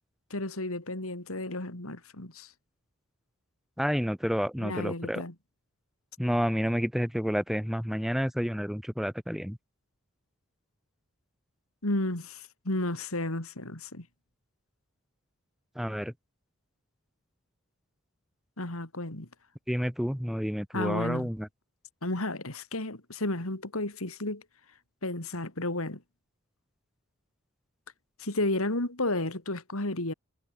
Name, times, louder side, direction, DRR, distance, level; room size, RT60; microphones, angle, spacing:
voice 1, 0.3-2.5 4.6-5.3 11.8-14.1 18.6-19.3 20.7-21.3 22.0-24.4 25.0-26.0 28.2-30.1, left 2 dB, 80° left, 3.4 m, -32 dB
voice 2, 3.8-5.2 6.2-9.6 15.7-16.1 19.7-21.5, equal, ahead, 1.6 m, -29 dB
head